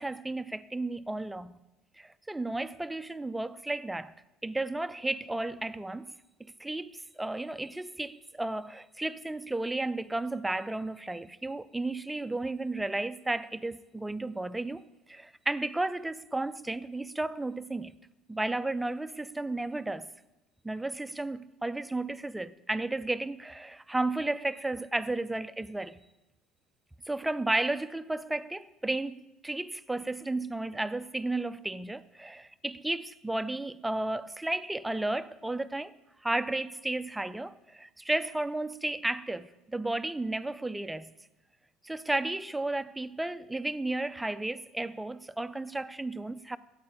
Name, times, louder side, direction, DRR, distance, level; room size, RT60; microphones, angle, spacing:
voice 1, 0.0-1.6 2.0-4.1 4.4-6.1 6.6-14.8 15.1-17.9 18.3-20.1 20.6-26.0 27.1-35.9 36.2-41.1 41.8-46.6, right 2 dB, 10° right, 0.4 m, -33 dB
8.6 x 8.5 x 8.6 m
supercardioid pair, 95°, 0 cm